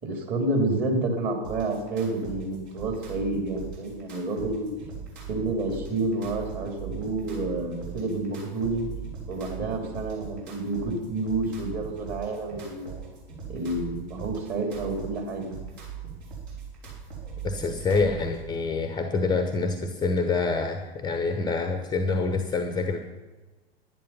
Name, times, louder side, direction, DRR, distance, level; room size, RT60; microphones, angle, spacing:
voice 1, 0.0-4.7 5.3-8.9 9.3-13.0 13.5-15.6, right 2 dB, 30° right, 3 dB, 2.9 m, -29 dB
sound 1, 1.4-18.4, right 7 dB, 60° right, 4.7 m, -40 dB
voice 2, 17.4-23.0, left 4 dB, 15° left, 7 dB, 0.9 m, -26 dB
10.5 x 10.5 x 5.7 m, 1.2 s
figure-of-eight pair, 95°, 30 cm